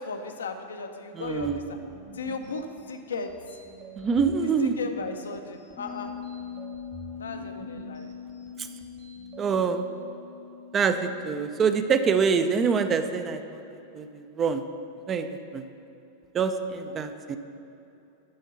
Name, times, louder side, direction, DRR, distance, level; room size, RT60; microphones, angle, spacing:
voice 1, 0.0-1.8 2.1-3.6 4.4-6.1 7.2-8.1 16.6-17.0, left 4 dB, 70° left, 6 dB, 0.6 m, -36 dB
voice 2, 1.2-1.6 4.0-4.7 8.6-8.7 9.4-9.8 10.7-13.6 13.9-14.1 14.4-14.6 15.1-15.3 15.5-15.6 16.3-17.4, right 5 dB, 25° right, 9 dB, 0.5 m, -25 dB
sound 1, 1.2-9.5, right 4 dB, 40° right, 1.5 m, -47 dB
sound 2, 5.8-14.1 14.4-14.5, left 8 dB, 25° left, 0.7 m, -43 dB
12.0 x 4.5 x 5.6 m, 2.8 s
figure-of-eight pair, 90°, 0 cm